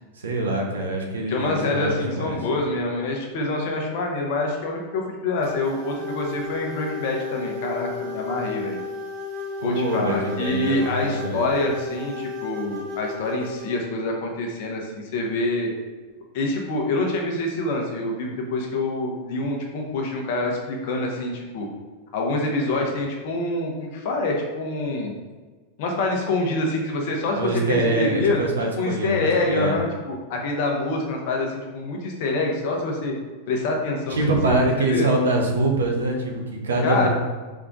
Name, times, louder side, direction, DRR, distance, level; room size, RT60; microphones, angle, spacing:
voice 1, 0.2-2.4 9.6-11.4 27.3-29.2 29.4-29.8 34.1-37.1, right 2 dB, 65° right, 1 dB, 0.9 m, -24 dB
voice 2, 1.3-8.8 9.6-15.7 16.3-21.7 22.1-25.1 25.8-28.5 28.8-33.1 33.5-34.4 34.9-35.1 36.8-37.1, left 2 dB, 50° left, 0 dB, 0.9 m, -26 dB
sound 1, 5.4-13.8, left 3 dB, 45° right, 1.5 m, -34 dB
3.6 x 3.5 x 3.8 m, 1.4 s
figure-of-eight pair, 90°, 0 cm